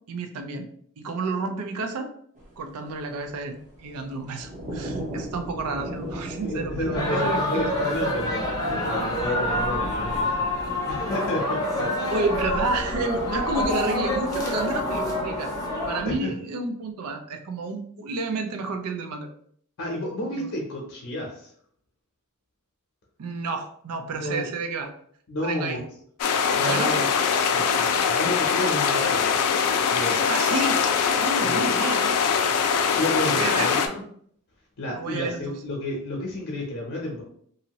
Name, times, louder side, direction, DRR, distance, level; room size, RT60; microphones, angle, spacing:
voice 1, 0.1-0.7 1.0-2.1 2.6-7.7 12.1-15.5 15.9-19.3 20.4-20.5 23.2-24.9 25.4-25.8 26.6-27.0 30.3-30.8 31.2-32.2 33.2-33.7 34.9-35.4, right 3 dB, 80° right, 5 dB, 0.4 m, -30 dB
sound 1, 2.3-16.2, right 1 dB, 35° right, 0.8 m, -37 dB
voice 2, 6.4-12.2 16.0-16.3 19.8-21.5 24.2-24.5 25.3-25.8 26.5-27.0 27.5-29.4 29.9-30.3 31.4-31.6 32.9-34.0 34.8-37.2, left 1 dB, 60° left, -2 dB, 0.7 m, -31 dB
sound 2, 7.0-16.0, left 1 dB, 15° left, 0.6 m, -27 dB
sound 3, 26.2-33.9, left 6 dB, 90° left, 0.4 m, -22 dB
2.7 x 2.6 x 2.9 m, 0.63 s
head